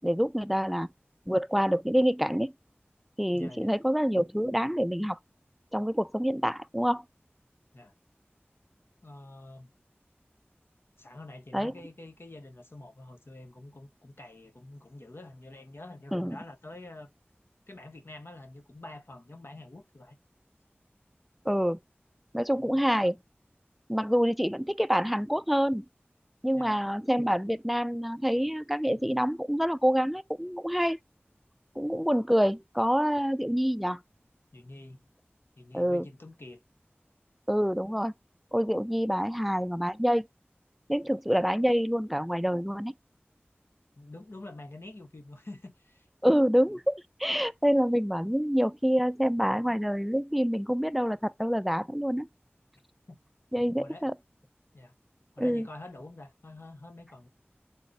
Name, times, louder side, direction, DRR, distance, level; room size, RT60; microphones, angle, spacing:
voice 1, 0.0-0.9 1.3-2.5 3.2-5.2 5.7-7.0 11.5-11.7 16.1-16.4 21.5-21.8 22.3-23.2 23.9-25.9 26.4-31.0 31.8-34.0 35.7-36.1 37.5-38.1 38.5-40.2 40.9-42.9 46.2-52.3 53.5-54.1 55.4-55.7, equal, ahead, 0.3 m, -27 dB
voice 2, 3.3-3.7 7.7-7.9 9.0-9.7 11.0-17.1 17.7-20.2 26.5-26.8 34.5-35.0 35.6-36.6 44.0-46.1 53.1-53.2 53.8-54.1 54.7-54.9 55.3-57.3, left 2 dB, 70° left, 0.8 m, -47 dB
3.7 x 2.1 x 3.7 m
wide cardioid pair, 40°, 4 cm